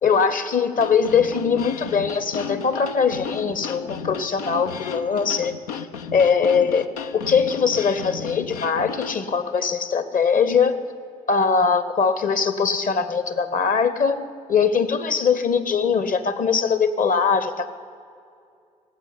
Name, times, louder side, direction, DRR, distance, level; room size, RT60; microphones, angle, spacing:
voice 1, 0.0-5.5 6.1-6.9 7.1-10.7 11.3-14.2 14.5-17.7, left 6 dB, 45° left, 13 dB, 1.3 m, -21 dB
sound 1, 0.7-9.2, left 6 dB, 80° left, 0.5 m, -34 dB
18.5 x 7.9 x 9.8 m, 2.3 s
hypercardioid pair, 45°, 19 cm